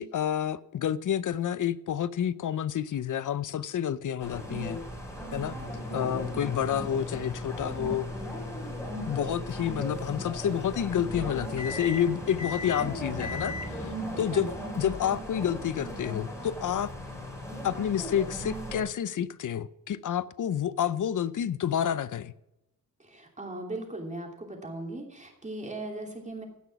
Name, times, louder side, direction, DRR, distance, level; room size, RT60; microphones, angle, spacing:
voice 1, 0.0-4.8 5.3-5.5 5.9-8.1 9.1-16.9 17.6-22.3, left 9 dB, 60° left, 0.6 m, -29 dB
sound 1, 4.2-18.8, equal, 10° left, 3.5 m, -38 dB
sound 2, 5.1-15.4, left 3 dB, 45° left, 2.1 m, -40 dB
voice 2, 5.9-6.3 12.6-12.9 14.3-14.5 23.0-26.5, right 2 dB, 20° right, 2.9 m, -39 dB
16.5 x 6.2 x 5.9 m
wide cardioid pair, 135°, 35 cm